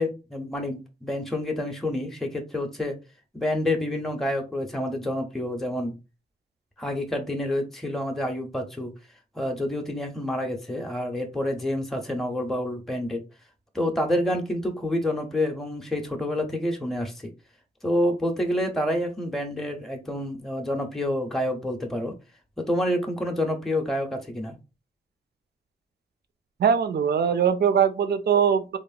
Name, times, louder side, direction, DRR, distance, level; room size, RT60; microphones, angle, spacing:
voice 1, 0.0-3.0 3.3-5.9 6.8-8.9 9.3-13.2 13.7-17.3 17.8-22.2 22.6-24.6, left 1 dB, ahead, 0.6 m, -28 dB
voice 2, 26.6-28.8, right 7 dB, 70° right, 0.4 m, -21 dB
3.0 x 2.0 x 2.4 m
cardioid pair, 55°, 18 cm